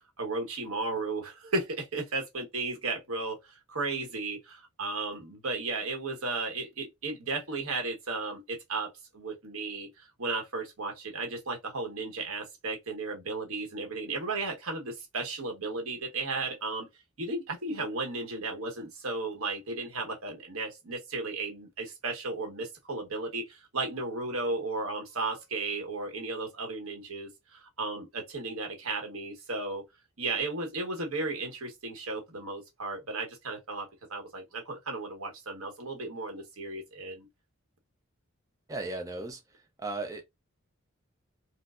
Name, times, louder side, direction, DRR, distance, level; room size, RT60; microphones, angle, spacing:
voice 1, 0.2-16.9 17.2-29.8 30.2-37.3, right 3 dB, 85° right, 1.1 m, -34 dB
voice 2, 38.7-39.4 39.8-40.2, right 2 dB, 15° right, 0.5 m, -35 dB
4.3 x 2.0 x 2.4 m
head